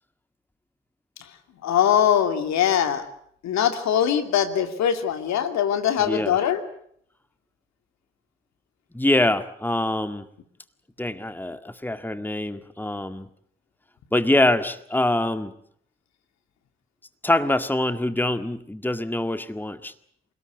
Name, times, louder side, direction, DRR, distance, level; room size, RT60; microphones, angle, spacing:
voice 1, 1.6-3.0 3.4-6.6, left 9 dB, 65° left, 8 dB, 2.9 m, -22 dB
voice 2, 6.0-6.4 8.9-10.3 11.0-13.3 14.1-15.5 17.2-19.9, left 1 dB, 5° left, 10 dB, 1.9 m, -24 dB
28.0 x 18.5 x 8.2 m, 0.68 s
hypercardioid pair, 45°, 30 cm